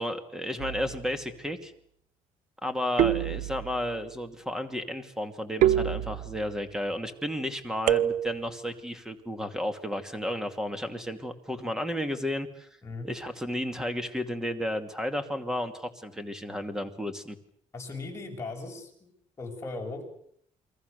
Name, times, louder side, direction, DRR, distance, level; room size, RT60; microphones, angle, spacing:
voice 1, 0.0-1.7 2.6-12.7 13.0-17.4, equal, 5° right, 9 dB, 2.5 m, -33 dB
sound 1, 0.6-1.1 3.0-3.9 5.6-6.6 7.9-8.6, right 12 dB, 85° right, 1.0 m, -27 dB
voice 2, 17.7-19.1 19.4-20.0, left 3 dB, 20° left, 1 dB, 7.3 m, -38 dB
30.0 x 23.0 x 6.8 m, 0.67 s
cardioid pair, 140°, 12 cm